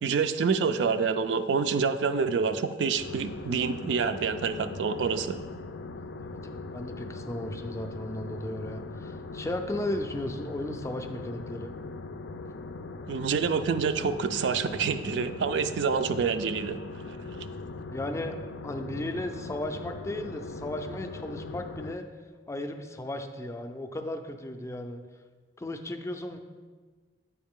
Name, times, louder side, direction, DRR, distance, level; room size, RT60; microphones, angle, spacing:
voice 1, 0.0-5.4 13.1-16.8, right 5 dB, 70° right, 10 dB, 0.4 m, -27 dB
sound 1, 2.9-21.9, left 3 dB, 80° left, 0.4 m, -40 dB
voice 2, 6.0-11.7 17.9-18.4 18.6-22.0 22.5-25.0 25.6-26.4, left 1 dB, 15° left, 6 dB, 0.4 m, -35 dB
8.4 x 4.7 x 3.6 m, 1.4 s
head